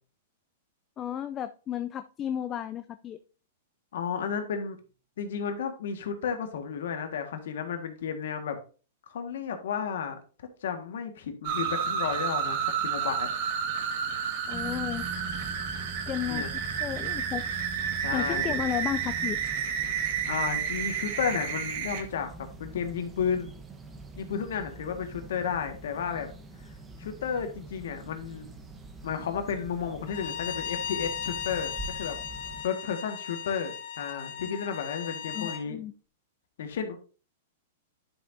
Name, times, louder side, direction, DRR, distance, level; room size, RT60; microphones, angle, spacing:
voice 1, 1.0-3.2 14.5-15.0 16.1-16.5 16.8-17.4 18.1-19.4 35.3-35.9, left 10 dB, 25° left, 11 dB, 0.4 m, -33 dB
voice 2, 3.9-4.8 5.2-8.6 9.1-10.2 10.6-13.3 16.2-16.5 18.0-18.6 20.3-23.5 24.2-26.3 27.0-28.5 29.0-32.2 32.6-35.8 36.6-37.0, left 7 dB, 75° left, 6 dB, 1.6 m, -32 dB
sound 1, 11.4-22.0, right 7 dB, 50° right, 1.7 m, -31 dB
sound 2, 14.5-32.6, right 3 dB, 15° right, 1.1 m, -44 dB
Bowed string instrument, 30.1-35.6, left 8 dB, 55° left, 1.1 m, -37 dB
11.0 x 5.9 x 2.7 m, 0.36 s
hypercardioid pair, 150°, 0 cm